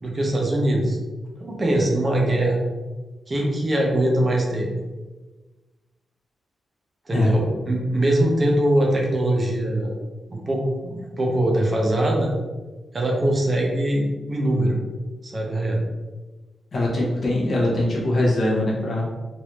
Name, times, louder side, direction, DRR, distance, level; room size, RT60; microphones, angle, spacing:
voice 1, 0.0-1.0 1.4-2.6 3.3-4.7 7.1-10.0 10.3-12.3 12.9-14.8 15.2-15.8, right 1 dB, 25° right, -1 dB, 0.6 m, -22 dB
voice 2, 16.7-19.1, left 1 dB, 40° left, -4 dB, 0.7 m, -22 dB
3.2 x 2.5 x 3.0 m, 1.2 s
wide cardioid pair, 155°, 0 cm